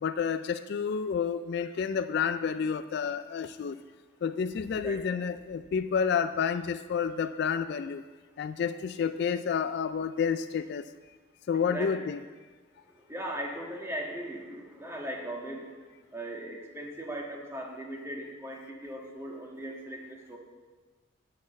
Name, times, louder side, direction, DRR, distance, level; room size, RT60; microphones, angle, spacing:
voice 1, 0.0-3.7 4.2-8.0 8.4-10.8 11.5-12.2, left 6 dB, 55° left, 12 dB, 0.3 m, -30 dB
voice 2, 4.8-5.1 11.5-12.1 12.7-15.8 16.1-20.4, right 1 dB, 15° right, -1 dB, 1.5 m, -39 dB
8.8 x 5.9 x 8.3 m, 1.3 s
head